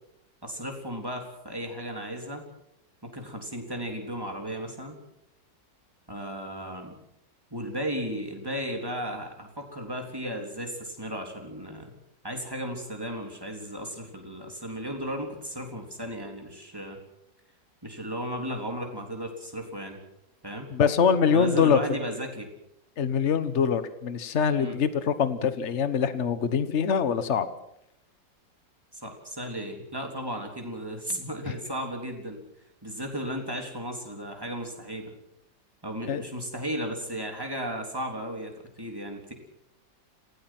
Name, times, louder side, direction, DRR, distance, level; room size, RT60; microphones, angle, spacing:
voice 1, 0.4-2.4 3.0-5.0 6.1-7.0 7.5-11.9 12.2-17.0 17.8-20.0 20.4-20.7 21.3-22.5 24.6-24.8 28.9-32.4 32.8-35.1 35.8-38.5 38.8-39.3, equal, 10° right, 2 dB, 3.7 m, -35 dB
voice 2, 20.7-21.8 23.0-27.5 36.1-36.2, left 6 dB, 40° left, 12 dB, 1.4 m, -24 dB
27.0 x 17.5 x 6.1 m, 0.79 s
omnidirectional pair, 2.0 m